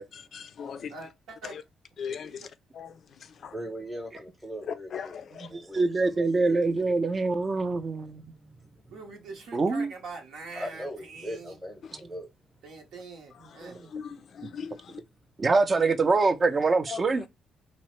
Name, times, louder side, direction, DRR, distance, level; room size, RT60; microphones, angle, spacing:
voice 1, 0.0-0.9 1.4-1.6 2.0-3.5 4.7-5.5 11.8-11.9 13.3-15.0 16.9-17.2, left 7 dB, 60° left, 0.3 m, -40 dB
voice 2, 0.9-1.5 2.3-2.5 8.9-11.6 12.6-13.8, right 3 dB, 85° right, 0.8 m, -43 dB
voice 3, 3.2-6.6 7.5-7.9 8.3-9.0 10.6-12.3, equal, 5° right, 0.8 m, -41 dB
voice 4, 5.5-8.2 9.5-9.9 13.6-13.8 15.4-17.2, right 3 dB, 35° right, 0.4 m, -24 dB
2.9 x 2.0 x 3.0 m
cardioid pair, 90°, 0 cm